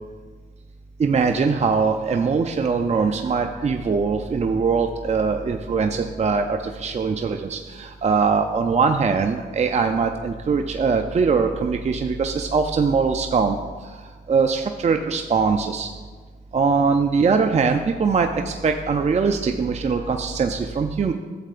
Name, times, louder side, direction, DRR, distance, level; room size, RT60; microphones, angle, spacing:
voice 1, 1.0-13.6 14.3-15.9 16.5-21.1, right 5 dB, 35° right, 5 dB, 0.5 m, -21 dB
11.5 x 7.4 x 2.5 m, 1.4 s
cardioid pair, 60°, 20 cm